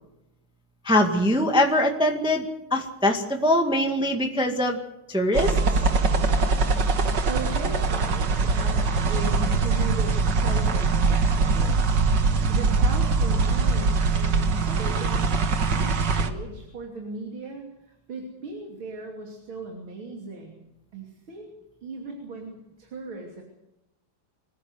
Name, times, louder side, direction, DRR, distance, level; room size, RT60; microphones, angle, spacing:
voice 1, 0.8-2.4 2.7-4.8 5.1-5.6, left 1 dB, ahead, 3 dB, 1.8 m, -22 dB
sound 1, 5.3-16.3, right 4 dB, 60° right, 2.1 m, -22 dB
voice 2, 7.3-8.8 9.1-11.8 12.5-20.6 20.9-21.5 21.8-23.4, right 2 dB, 85° right, 1 dB, 3.7 m, -37 dB
25.0 x 15.5 x 8.0 m, 0.92 s
omnidirectional pair, 2.2 m